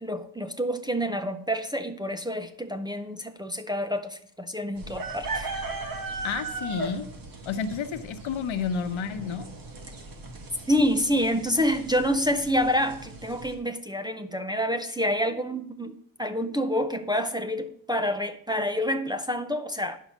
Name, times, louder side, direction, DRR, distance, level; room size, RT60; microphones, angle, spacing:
voice 1, 0.0-5.5 10.7-20.0, equal, 10° right, 0.5 m, -27 dB
sound 1, 4.8-13.5, right 3 dB, 45° right, 1.6 m, -38 dB
voice 2, 6.2-7.0 7.5-9.4, left 6 dB, 80° left, 1.1 m, -30 dB
10.5 x 5.6 x 6.1 m
wide cardioid pair, 150°, 47 cm